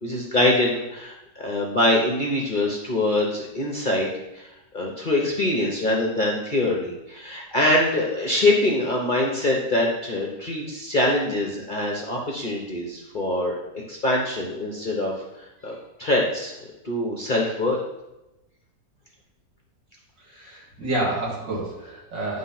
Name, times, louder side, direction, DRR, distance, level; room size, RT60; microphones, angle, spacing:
voice 1, 0.0-4.1 4.3-4.5 4.7-15.1 15.6-15.7 16.0-16.5 16.8-17.8, left 1 dB, 35° left, -2 dB, 0.9 m, -24 dB
voice 2, 20.2-22.4, right 2 dB, 75° right, -4 dB, 3.1 m, -29 dB
10.0 x 3.5 x 5.8 m, 0.95 s
omnidirectional pair, 1.9 m